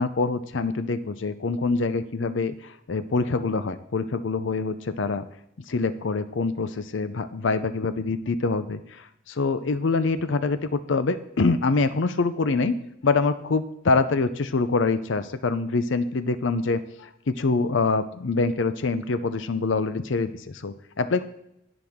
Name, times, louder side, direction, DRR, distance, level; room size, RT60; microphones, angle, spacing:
voice 1, 0.0-2.5 2.9-5.2 5.7-8.8 9.3-21.2, left 3 dB, 70° left, 12 dB, 0.6 m, -25 dB
18.0 x 6.0 x 3.6 m, 0.81 s
head